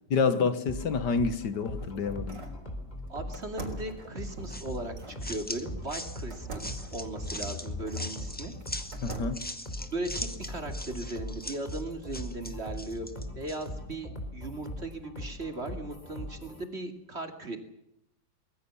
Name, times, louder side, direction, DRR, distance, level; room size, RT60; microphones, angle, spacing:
voice 1, 0.1-2.4 9.0-9.4, left 5 dB, 75° left, 2.0 m, -28 dB
sound 1, 0.7-16.7, left 1 dB, 25° left, 3.9 m, -40 dB
sound 2, 1.3-2.6 3.3-5.2 6.3-8.1 8.6-9.5, right 3 dB, 85° right, 4.6 m, -44 dB
voice 2, 3.1-8.5 9.9-13.1 13.4-17.6, right 2 dB, 35° right, 2.8 m, -38 dB
sound 3, 4.5-13.7, left 1 dB, 5° left, 1.5 m, -41 dB
24.0 x 21.0 x 7.1 m
omnidirectional pair, 1.8 m